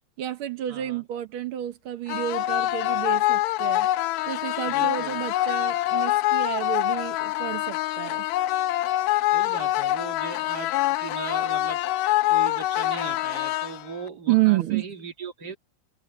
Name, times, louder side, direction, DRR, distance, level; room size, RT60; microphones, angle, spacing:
voice 1, 0.2-3.9 4.2-8.3 14.3-14.8, right 14 dB, 80° right, 1.2 m, -29 dB
voice 2, 0.7-1.0 4.7-5.2 9.3-11.8 12.3-15.6, right 5 dB, 35° right, 2.4 m, -38 dB
sound 1, 2.1-14.1, left 15 dB, 85° left, 1.6 m, -25 dB
omnidirectional pair, 3.9 m